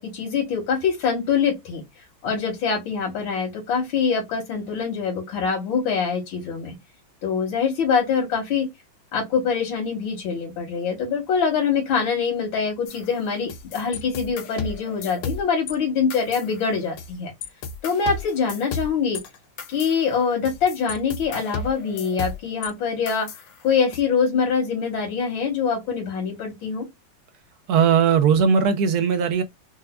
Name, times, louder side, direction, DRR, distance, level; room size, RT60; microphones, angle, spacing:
voice 1, 0.0-1.8 2.2-6.8 7.2-8.7 9.1-17.3 17.8-19.2 19.7-23.3 23.6-26.9, left 6 dB, 90° left, 2.1 m, -24 dB
sound 1, 12.9-15.7 16.1-17.1 17.4-22.7 23.1-24.0, left 4 dB, 75° left, 1.3 m, -34 dB
voice 2, 27.7-29.4, right 6 dB, 75° right, 0.9 m, -18 dB
4.6 x 2.2 x 2.2 m
omnidirectional pair, 2.1 m